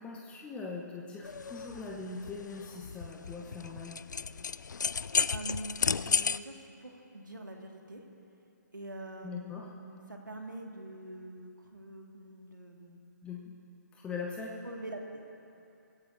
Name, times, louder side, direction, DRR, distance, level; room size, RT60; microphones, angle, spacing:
voice 1, 0.0-4.0 9.2-9.7 13.2-13.4 13.9-14.5, left 4 dB, 10° left, -2 dB, 1.1 m, -41 dB
sound 1, 1.2-6.4, left 6 dB, 70° left, 0.4 m, -33 dB
voice 2, 5.3-8.0 8.7-13.0 14.6-15.2, right 1 dB, 85° right, 1 dB, 2.2 m, -44 dB
24.5 x 16.5 x 2.8 m, 2.7 s
figure-of-eight pair, 135°, 10 cm